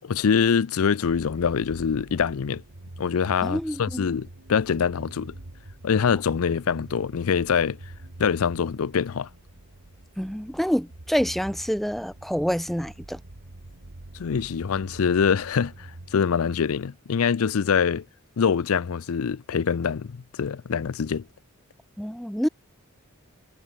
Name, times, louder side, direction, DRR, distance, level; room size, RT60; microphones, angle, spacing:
voice 1, 0.0-2.6 3.0-5.3 5.8-7.8 8.2-9.3 14.1-18.0 18.4-21.2, left 6 dB, 85° left, 0.5 m, -24 dB
sound 1, 1.0-16.1, right 1 dB, 85° right, 1.8 m, -45 dB
voice 2, 3.4-4.1 10.2-13.2 22.0-22.5, equal, ahead, 0.6 m, -27 dB
head